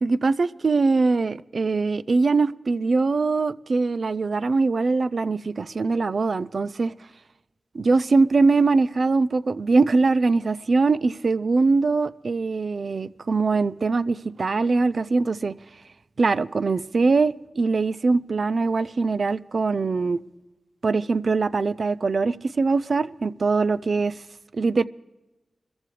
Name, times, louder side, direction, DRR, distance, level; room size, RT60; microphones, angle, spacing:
voice 1, 0.0-6.9 7.7-15.5 16.2-20.2 20.8-24.2 24.5-24.8, right 3 dB, 65° right, 0.5 m, -22 dB
24.5 x 14.5 x 3.3 m
cardioid pair, 50°, 0 cm